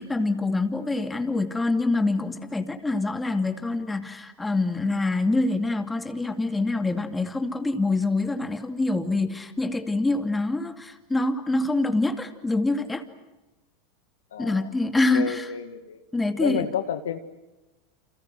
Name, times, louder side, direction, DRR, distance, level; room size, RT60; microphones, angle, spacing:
voice 1, 0.0-13.0 14.4-15.5 16.1-16.7, left 2 dB, 10° left, 6 dB, 2.5 m, -25 dB
voice 2, 14.3-14.7 15.1-16.0 16.4-17.2, left 8 dB, 85° left, 8 dB, 2.1 m, -30 dB
29.5 x 27.5 x 6.2 m, 1.0 s
hypercardioid pair, 100°, 0 cm